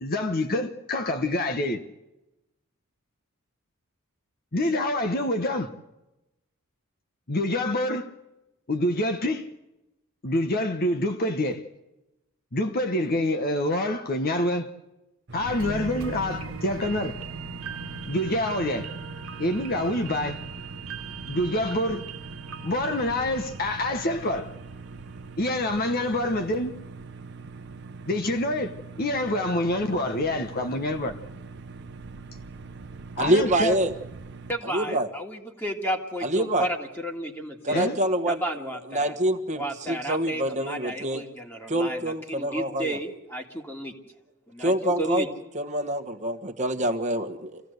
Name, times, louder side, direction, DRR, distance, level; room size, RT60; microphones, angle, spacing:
voice 1, 0.0-1.8 4.5-5.7 7.3-8.1 8.7-9.5 10.2-11.6 12.5-14.7 15.3-17.2 18.1-18.9 19.4-20.4 21.3-22.0 22.6-24.5 25.4-26.7 28.1-31.2 33.2-33.8 34.9-35.0 37.7-38.0, left 1 dB, 45° left, 1.1 m, -26 dB
sound 1, 15.3-34.5, right 4 dB, 55° right, 0.9 m, -42 dB
sound 2, 15.4-24.8 25.2-25.3, right 4 dB, 75° right, 1.4 m, -39 dB
voice 2, 33.2-33.9 34.7-35.1 36.2-36.7 37.6-38.4 38.9-41.2 41.7-43.0 44.6-45.2 45.5-47.6, right 1 dB, 35° right, 1.5 m, -26 dB
voice 3, 34.5-37.9 38.3-39.2 39.5-43.9 44.5-45.3, right 1 dB, 10° left, 2.0 m, -33 dB
25.5 x 16.0 x 8.0 m
head